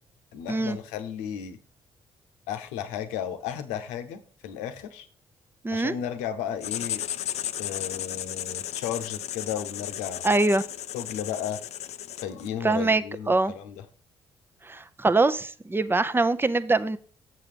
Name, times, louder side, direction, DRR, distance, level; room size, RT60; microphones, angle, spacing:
voice 1, 0.3-1.6 2.5-5.1 5.7-7.0 7.6-10.4 10.9-11.6 12.2-13.8, left 9 dB, 85° left, 0.9 m, -34 dB
voice 2, 5.6-5.9 10.2-10.6 12.6-13.5 14.7-17.0, right 3 dB, 20° right, 0.7 m, -23 dB
Writing, 6.6-12.6, left 11 dB, 65° left, 0.4 m, -34 dB
7.7 x 6.3 x 5.1 m
hypercardioid pair, 50°, 12 cm